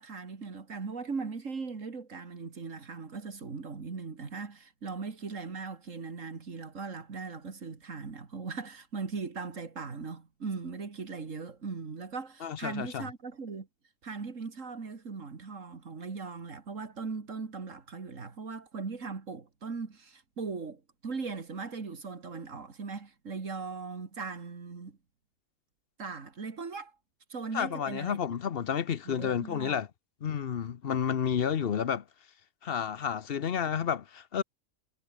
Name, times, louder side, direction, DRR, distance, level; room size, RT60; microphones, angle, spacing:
voice 1, 0.0-13.7 14.0-25.0 26.0-26.9 27.3-28.2 29.1-29.8, right 4 dB, 90° right, 2.7 m, -39 dB
voice 2, 12.4-13.1 27.5-29.9 30.2-32.0 32.6-34.4, left 8 dB, 55° left, 1.0 m, -31 dB
omnidirectional pair, 1.3 m